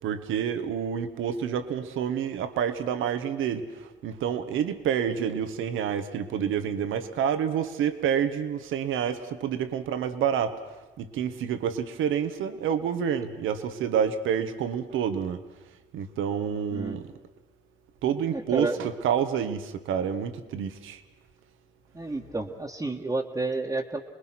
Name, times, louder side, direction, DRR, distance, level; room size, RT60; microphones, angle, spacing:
voice 1, 0.0-10.6 11.0-15.4 15.9-17.1 18.0-21.0, right 8 dB, 85° right, 9 dB, 1.5 m, -28 dB
voice 2, 18.3-18.8 21.9-24.0, right 2 dB, 15° right, -2 dB, 1.6 m, -30 dB
28.5 x 20.5 x 6.1 m, 1.1 s
cardioid pair, 90°, 20 cm